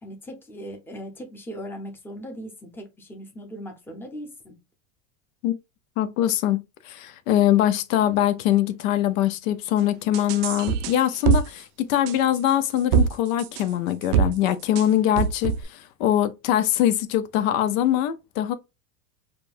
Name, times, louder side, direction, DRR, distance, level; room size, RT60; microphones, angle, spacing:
voice 1, 0.0-4.5, equal, 5° left, 0.7 m, -39 dB
voice 2, 6.0-18.5, left 12 dB, 65° left, 0.6 m, -23 dB
sound 1, 10.1-11.4 12.1-13.1 13.4-13.6 14.0-14.3 14.8-14.9 15.2-15.6, right 8 dB, 85° right, 0.6 m, -22 dB
5.2 x 2.2 x 2.5 m
supercardioid pair, 130°, 44 cm